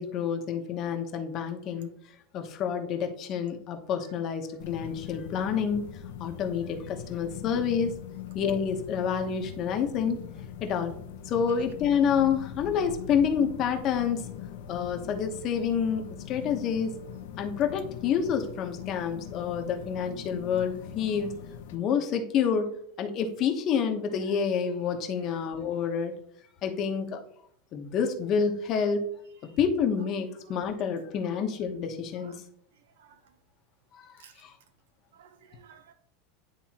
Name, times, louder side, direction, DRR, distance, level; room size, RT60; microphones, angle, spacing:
voice 1, 0.0-1.9 2.3-5.9 6.2-7.9 8.3-10.2 10.6-10.9 11.2-14.3 14.7-16.9 17.4-21.3 21.7-26.1 26.6-27.2 27.7-29.1 29.6-32.4 34.0-34.1 34.4-34.5, left 7 dB, 40° left, 5 dB, 1.0 m, -28 dB
sound 1, 4.6-21.8, left 9 dB, 75° left, 0.8 m, -42 dB
voice 2, 35.1-35.9, right 7 dB, 90° right, 10 dB, 0.9 m, -53 dB
10.0 x 3.5 x 2.9 m, 0.65 s
supercardioid pair, 145°, 0 cm